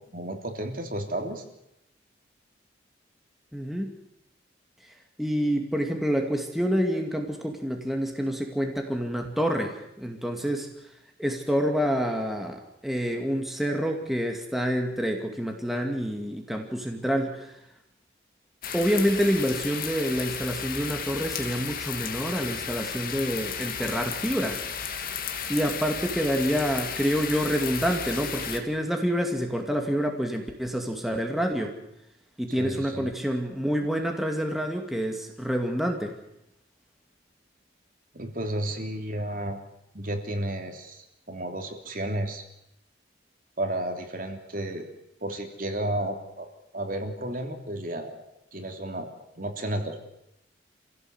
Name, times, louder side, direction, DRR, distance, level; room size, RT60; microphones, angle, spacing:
voice 1, 0.1-1.4 32.5-33.1 38.1-39.6 39.9-42.4 43.6-44.8 45.2-46.5 46.7-48.2 48.5-49.1 49.3-50.0, right 1 dB, 45° right, 4 dB, 3.1 m, -32 dB
voice 2, 3.5-3.9 4.8-4.9 5.2-10.7 11.2-17.6 18.7-24.6 25.5-31.8 32.4-36.2, equal, ahead, 2 dB, 2.4 m, -27 dB
sound 1, 18.6-28.6, left 7 dB, 50° left, 2.5 m, -34 dB
28.0 x 16.5 x 8.1 m, 0.83 s
head